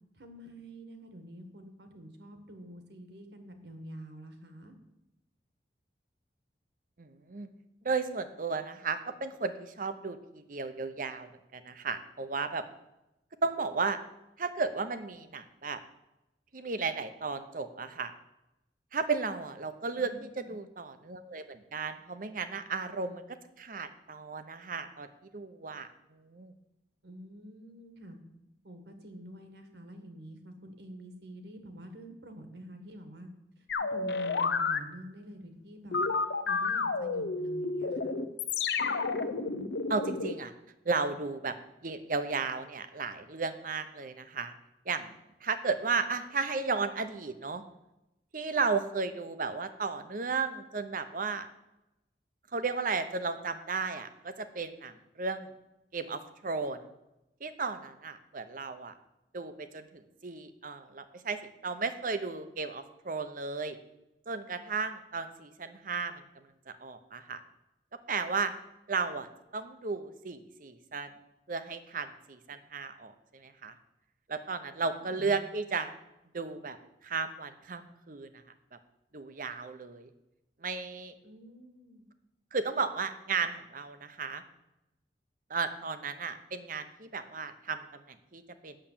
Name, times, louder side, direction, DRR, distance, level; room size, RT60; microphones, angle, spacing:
voice 1, 0.1-4.7 20.0-20.6 27.0-28.2 28.6-33.3 33.6-38.1 75.0-75.4 81.2-82.1, equal, 75° right, 6 dB, 1.7 m, -48 dB
voice 2, 7.0-7.5 7.8-12.6 13.4-14.0 14.4-15.8 16.5-18.1 18.9-23.2 23.6-26.5 39.9-40.5 40.8-41.6 41.8-44.5 44.9-47.6 48.3-51.5 52.5-55.5 55.9-56.9 57.4-58.9 59.3-63.8 64.3-66.2 66.7-67.4 68.1-68.5 68.9-71.1 71.5-73.7 74.3-75.9 76.3-76.8 77.0-78.4 79.1-80.1 80.6-81.1 82.5-84.4 85.5-88.8, right 4 dB, 50° right, 10 dB, 0.8 m, -34 dB
sound 1, 33.7-34.8 35.9-40.3, left 4 dB, 75° left, 0.8 m, -30 dB
8.9 x 7.4 x 7.4 m, 0.93 s
head